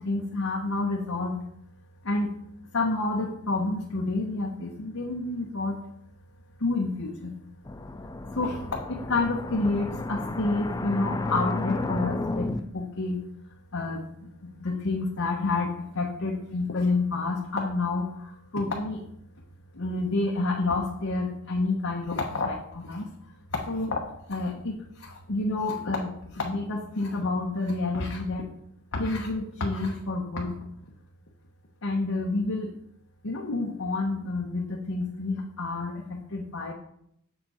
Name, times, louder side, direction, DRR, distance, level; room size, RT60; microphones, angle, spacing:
voice 1, 0.0-1.4 2.0-2.3 2.7-5.8 6.6-7.3 8.4-8.6 8.9-13.2 13.7-14.0 14.6-18.1 18.5-19.0 19.8-23.1 23.7-24.0 24.3-24.8 25.0-28.5 28.9-30.6 31.8-32.7 33.2-36.7, left 3 dB, 65° left, -1 dB, 1.0 m, -29 dB
sound 1, 7.7-12.6, left 2 dB, 15° left, 0.4 m, -32 dB
7.1 x 6.6 x 4.3 m, 0.73 s
head